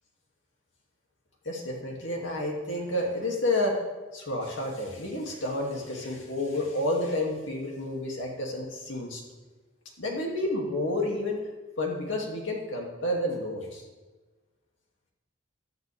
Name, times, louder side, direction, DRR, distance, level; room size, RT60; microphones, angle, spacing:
voice 1, 1.4-3.8 4.1-9.2 10.0-11.5 11.8-13.9, left 1 dB, 80° left, -1 dB, 2.7 m, -30 dB
16.0 x 12.0 x 3.6 m, 1.3 s
head